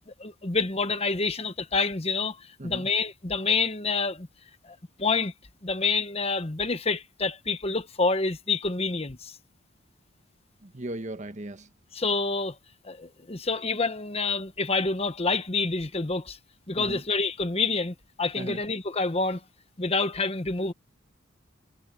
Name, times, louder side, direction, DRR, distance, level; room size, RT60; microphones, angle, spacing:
voice 1, 0.2-4.3 4.6-5.3 5.6-9.4 11.9-12.6 12.8-16.4 16.7-19.4 19.8-20.7, left 4 dB, 30° left, 1.1 m, -28 dB
voice 2, 10.6-11.7 16.8-17.0 18.4-18.6, right 1 dB, 40° right, 1.2 m, -37 dB
head